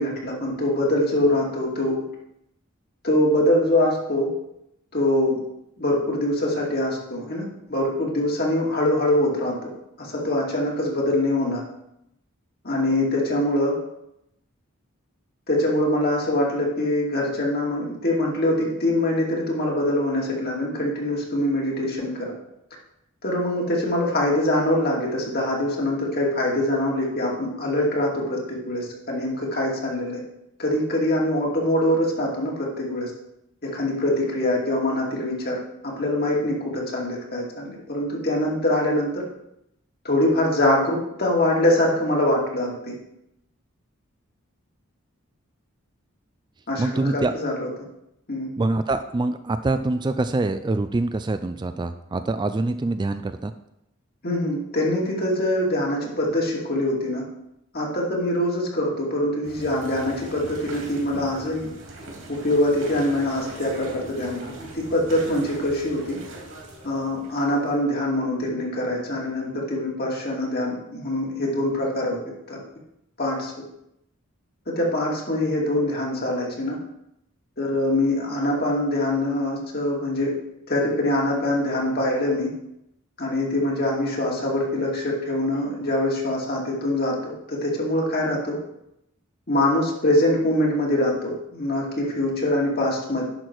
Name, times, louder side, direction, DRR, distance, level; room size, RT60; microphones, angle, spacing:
voice 1, 0.0-2.0 3.0-4.3 4.9-5.4 5.8-7.4 7.7-9.7 10.0-11.6 12.6-13.7 15.5-22.3 23.2-30.2 30.6-33.1 33.6-35.6 35.8-39.2 40.0-42.9 46.7-47.7 48.3-48.5 54.2-57.2 57.7-61.7 62.3-64.4 64.7-66.2 66.8-72.2 72.5-72.6 73.2-73.5 74.7-76.8 77.6-80.3 80.7-82.5 83.2-88.6 89.5-93.2, left 1 dB, 50° left, -2 dB, 2.5 m, -24 dB
voice 2, 46.8-47.3 48.6-53.5, right 2 dB, 20° right, 10 dB, 0.3 m, -25 dB
sound 1, 59.4-67.7, right 2 dB, 70° right, 2.8 m, -41 dB
11.0 x 6.1 x 4.6 m, 0.83 s
head